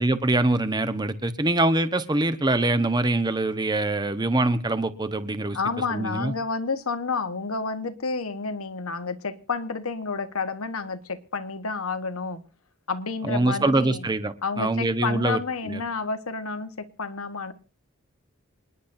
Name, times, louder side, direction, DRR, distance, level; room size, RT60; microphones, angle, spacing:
voice 1, 0.0-5.6 5.9-6.3 13.2-15.8, right 2 dB, 20° right, 1.0 m, -24 dB
voice 2, 5.5-12.4 12.9-14.1 14.4-17.5, left 4 dB, 90° left, 1.3 m, -30 dB
27.5 x 10.5 x 2.7 m
head